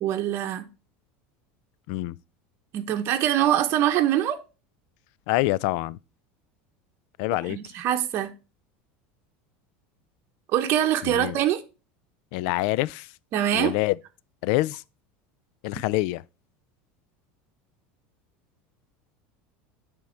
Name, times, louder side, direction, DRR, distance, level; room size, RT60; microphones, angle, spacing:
voice 1, 0.0-0.7 2.7-4.4 7.5-8.3 10.5-11.6 13.3-13.7, right 11 dB, 45° right, 0.9 m, -24 dB
voice 2, 5.3-6.0 7.2-7.6 11.0-11.4 12.3-13.1 13.5-14.0 14.4-14.8 15.6-16.2, left 18 dB, 65° left, 0.3 m, -26 dB
9.4 x 3.6 x 4.4 m
supercardioid pair, 135°, 6 cm